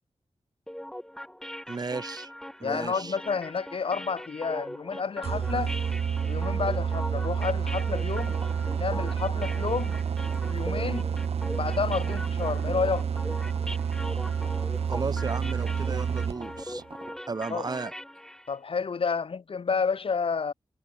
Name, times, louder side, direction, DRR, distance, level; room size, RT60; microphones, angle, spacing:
sound 1, 0.7-18.5, equal, 5° left, 2.0 m, -40 dB
voice 1, 1.7-2.3 2.6-3.2 14.9-16.8 17.3-17.9, right 4 dB, 40° right, 0.9 m, -34 dB
voice 2, 2.6-5.7 6.3-8.4 8.8-10.0 10.5-11.1 11.6-13.1 17.5-17.7 18.5-20.5, left 5 dB, 65° left, 1.4 m, -30 dB
sound 2, 5.2-16.6, right 7 dB, 90° right, 0.8 m, -29 dB
sound 3, 8.1-17.1, right 4 dB, 55° right, 3.1 m, -47 dB
wide cardioid pair, 100°, 10 cm